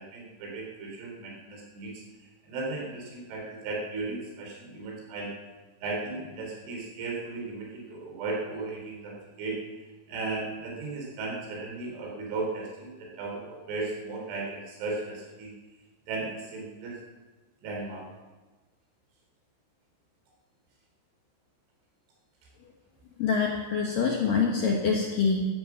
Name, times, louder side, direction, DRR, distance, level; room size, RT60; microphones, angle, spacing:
voice 1, 0.0-2.0 2.4-5.3 5.8-9.6 10.1-15.5 16.1-17.0 17.6-18.1, right 3 dB, 70° right, -1 dB, 6.1 m, -36 dB
voice 2, 23.2-25.5, left 5 dB, 60° left, -1 dB, 2.4 m, -25 dB
13.5 x 12.5 x 7.4 m, 1.2 s
omnidirectional pair, 5.8 m